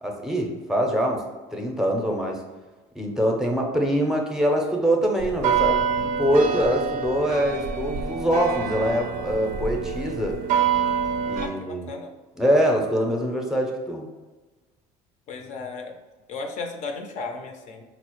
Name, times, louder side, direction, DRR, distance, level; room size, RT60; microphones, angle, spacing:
voice 1, 0.0-1.2 1.5-2.4 3.0-10.4 11.3-11.9 12.4-14.1, equal, 5° right, 1 dB, 0.6 m, -24 dB
sound 1, 5.2-11.5, right 7 dB, 60° right, 0.4 m, -26 dB
voice 2, 11.4-12.1 15.3-16.0 16.3-17.8, left 4 dB, 55° left, 4 dB, 0.5 m, -35 dB
4.2 x 2.0 x 3.0 m, 1.2 s
supercardioid pair, 95°, 15 cm